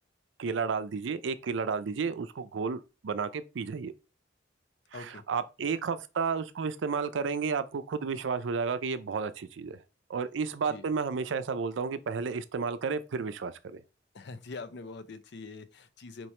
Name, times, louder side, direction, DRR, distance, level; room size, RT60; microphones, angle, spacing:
voice 1, 0.4-3.9 4.9-9.8 10.1-13.8, right 5 dB, 80° right, 0.4 m, -32 dB
voice 2, 4.9-5.2 10.6-10.9 14.1-16.3, left 3 dB, 65° left, 0.5 m, -43 dB
4.5 x 2.9 x 3.2 m
head